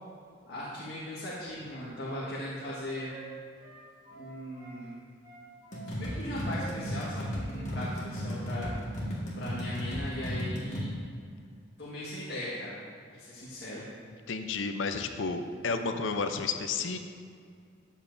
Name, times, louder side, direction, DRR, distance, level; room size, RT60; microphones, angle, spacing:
voice 1, 0.5-3.1 4.1-5.0 5.9-8.7 9.4-10.9 11.8-12.8 13.1-13.9, left 1 dB, 60° left, -8 dB, 1.6 m, -38 dB
Wind instrument woodwind instrument, 1.3-4.8 5.2-7.3 7.5-7.7 8.0-8.3 8.6-8.8, right 4 dB, 20° right, 2.0 m, -50 dB
sound 1, 5.7-10.9, equal, 40° left, 1.7 m, -35 dB
voice 2, 14.3-17.0, left 4 dB, 80° left, 7 dB, 0.6 m, -31 dB
13.0 x 7.5 x 2.7 m, 2.3 s
head